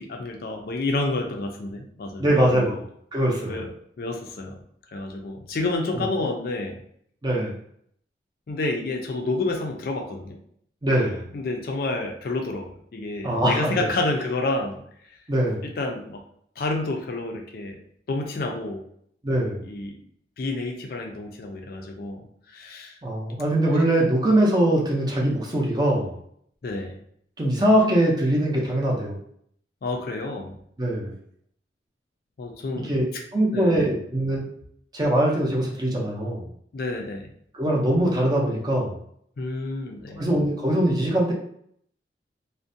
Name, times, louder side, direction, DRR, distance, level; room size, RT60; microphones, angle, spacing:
voice 1, 0.0-2.7 3.5-3.7 4.0-4.5 4.9-6.8 8.5-10.4 11.3-14.8 15.8-16.2 16.6-17.8 18.1-18.8 19.6-20.0 20.4-23.0 26.6-27.0 29.8-30.6 32.4-32.9 33.5-34.0 36.7-37.3 39.4-40.2, left 2 dB, 50° left, 2 dB, 0.4 m, -29 dB
voice 2, 2.2-2.8 3.1-3.5 5.9-6.0 7.2-7.5 10.8-11.3 13.2-13.9 15.3-15.7 19.2-19.6 23.0-26.2 27.4-29.2 30.8-31.1 32.8-33.1 33.3-34.5 34.9-36.4 37.5-38.9 40.2-41.3, right 1 dB, 20° right, -3 dB, 0.5 m, -22 dB
2.5 x 2.1 x 2.6 m, 0.67 s
head